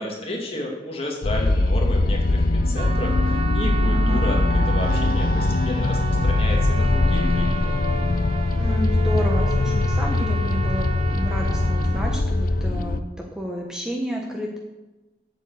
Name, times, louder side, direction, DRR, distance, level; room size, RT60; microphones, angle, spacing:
voice 1, 0.0-4.4 4.7-7.8, left 1 dB, 35° left, -1 dB, 2.3 m, -32 dB
sound 1, 1.2-13.0, left 2 dB, 50° left, 0.6 m, -21 dB
Trumpet, 2.7-12.2, right 5 dB, 35° right, 0.4 m, -34 dB
voice 2, 3.9-4.2 8.6-14.6, equal, 5° right, 0 dB, 1.1 m, -30 dB
8.2 x 8.1 x 8.1 m, 1.1 s
head